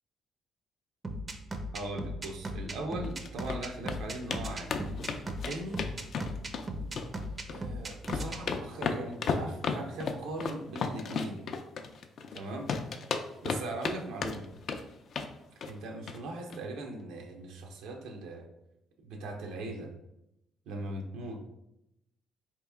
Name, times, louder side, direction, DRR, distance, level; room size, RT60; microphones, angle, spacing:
sound 1, 1.0-8.4, right 1 dB, 30° right, 0.5 m, -37 dB
voice 1, 1.7-4.7 5.2-5.8 7.5-11.4 12.3-12.7 13.4-14.5 15.6-18.5 19.0-19.9 20.7-21.4, right 2 dB, 90° right, 2 dB, 0.7 m, -39 dB
sound 2, 3.0-3.6 3.9-4.0 4.3-4.4 4.7-6.7 7.0-7.6 7.9-12.4 12.7-14.0 14.2-14.8 15.1-15.3 15.6-15.8 16.1-16.2 16.5-16.6, left 5 dB, 55° left, 0.4 m, -33 dB
4.2 x 3.0 x 3.5 m, 0.86 s
cardioid pair, 120°, 0 cm